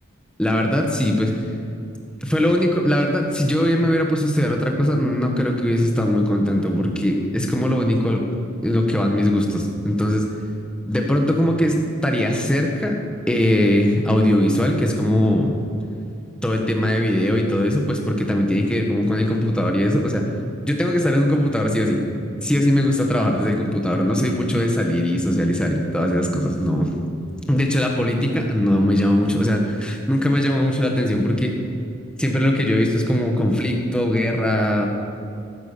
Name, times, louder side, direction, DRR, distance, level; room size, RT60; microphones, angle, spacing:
voice 1, 0.4-1.3 2.2-8.2 8.6-10.3 10.8-13.0 13.3-15.5 16.4-20.2 20.6-22.0 22.3-27.0 27.5-31.6 32.2-34.9, left 1 dB, 5° left, 1 dB, 1.5 m, -20 dB
14.0 x 13.5 x 7.0 m, 2.6 s
head